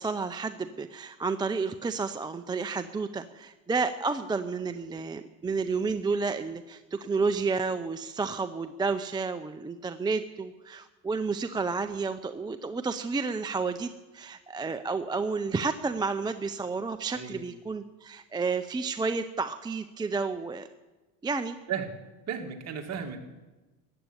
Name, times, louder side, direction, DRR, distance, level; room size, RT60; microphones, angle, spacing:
voice 1, 0.0-20.7 21.2-21.6, right 4 dB, 10° right, 9 dB, 0.5 m, -31 dB
voice 2, 22.3-23.2, right 7 dB, 45° right, 3 dB, 2.3 m, -34 dB
14.5 x 8.9 x 9.6 m, 1.2 s
supercardioid pair, 115°, 38 cm